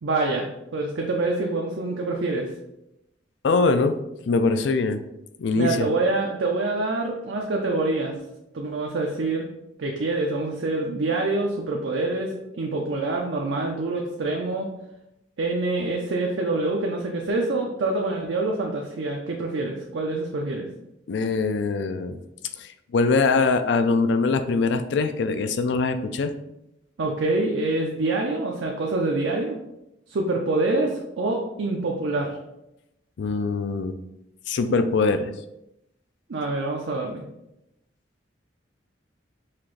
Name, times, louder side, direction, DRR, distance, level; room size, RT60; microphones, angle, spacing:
voice 1, 0.0-2.5 5.6-8.1 8.5-9.5 9.8-14.7 15.4-20.7 27.0-29.6 30.1-32.4 36.3-37.2, right 2 dB, 80° right, 0 dB, 0.5 m, -26 dB
voice 2, 3.4-4.0 4.3-5.0 5.4-5.9 21.1-22.2 22.6-26.3 33.2-34.0 34.5-35.3, left 3 dB, 70° left, 9 dB, 0.4 m, -23 dB
5.7 x 2.5 x 3.2 m, 0.87 s
head